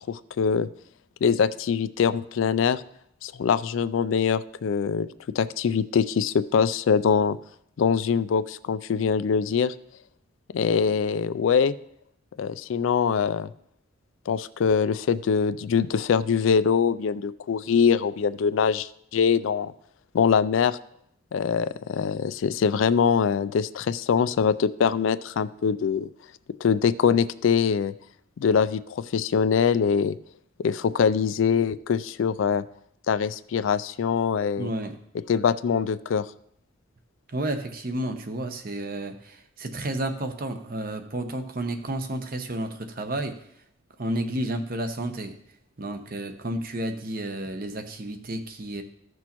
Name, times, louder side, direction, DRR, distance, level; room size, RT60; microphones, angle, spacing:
voice 1, 0.1-0.7 1.2-2.8 3.2-5.1 5.4-7.4 7.8-9.7 10.5-11.8 12.4-13.5 14.3-19.7 20.1-20.8 21.3-26.1 26.6-27.9 28.4-30.2 30.6-32.6 33.1-34.7 35.3-36.3, left 6 dB, 70° left, 15 dB, 0.3 m, -23 dB
voice 2, 34.6-35.0 37.3-43.4 44.0-45.4 45.8-48.8, right 1 dB, 45° right, 7 dB, 0.8 m, -31 dB
14.5 x 6.2 x 3.0 m, 0.72 s
head